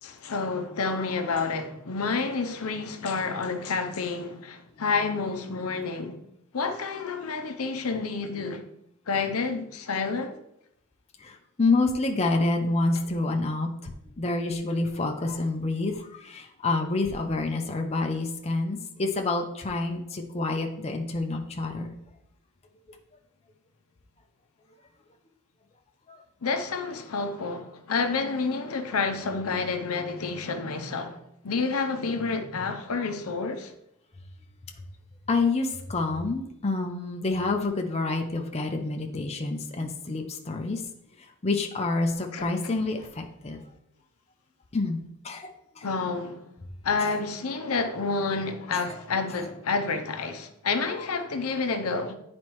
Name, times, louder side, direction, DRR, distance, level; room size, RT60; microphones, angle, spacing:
voice 1, 0.0-6.2 6.5-8.6 9.1-10.4 26.4-33.7 42.3-42.8 45.8-46.4 46.8-52.2, left 4 dB, 80° left, 0.7 m, -29 dB
voice 2, 11.2-13.7 14.2-15.9 16.2-21.9 35.3-40.8 41.4-43.6 44.7-45.5 45.8-45.9, left 3 dB, 30° left, 0.6 m, -28 dB
9.3 x 4.2 x 3.1 m
head